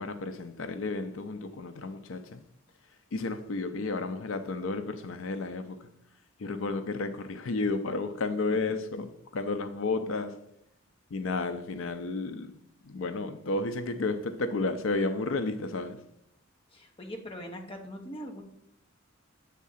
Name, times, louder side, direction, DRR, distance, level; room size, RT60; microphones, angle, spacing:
voice 1, 0.0-2.4 3.1-6.0 6.4-10.5 11.1-16.1, left 3 dB, 70° left, 0.5 m, -32 dB
voice 2, 16.7-18.4, equal, 25° left, 1.1 m, -41 dB
7.3 x 3.7 x 5.6 m
head